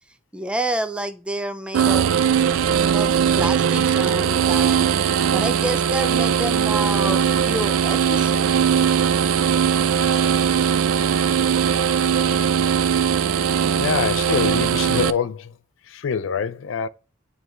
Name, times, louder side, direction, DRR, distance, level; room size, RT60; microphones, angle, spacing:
voice 1, 0.3-2.1 2.9-4.9 5.3-8.5, right 1 dB, 5° right, 0.4 m, -29 dB
sound 1, 1.7-15.1, right 8 dB, 90° right, 0.4 m, -19 dB
voice 2, 13.8-15.5 15.9-16.9, left 6 dB, 70° left, 0.4 m, -25 dB
9.3 x 3.3 x 3.1 m
head